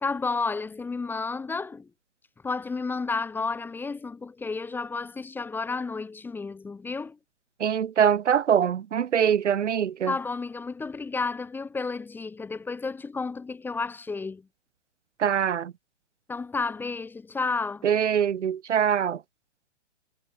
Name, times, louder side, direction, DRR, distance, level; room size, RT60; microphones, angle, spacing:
voice 1, 0.0-1.9 2.4-7.2 10.1-14.5 16.3-17.9, left 4 dB, 5° left, 0.9 m, -31 dB
voice 2, 7.6-10.1 15.2-15.7 17.8-19.2, right 8 dB, 85° right, 0.6 m, -23 dB
figure-of-eight pair, 125°, 35 cm